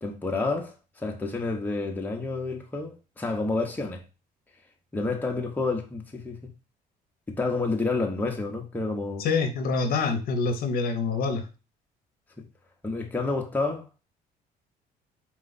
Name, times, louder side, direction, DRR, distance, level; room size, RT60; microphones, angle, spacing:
voice 1, 0.0-0.7 1.0-4.0 4.9-6.4 7.3-9.3 12.8-13.8, left 3 dB, 10° left, 0.8 m, -29 dB
voice 2, 9.2-11.5, left 4 dB, 60° left, 0.7 m, -26 dB
4.3 x 2.4 x 3.9 m
cardioid pair, 110°, 17 cm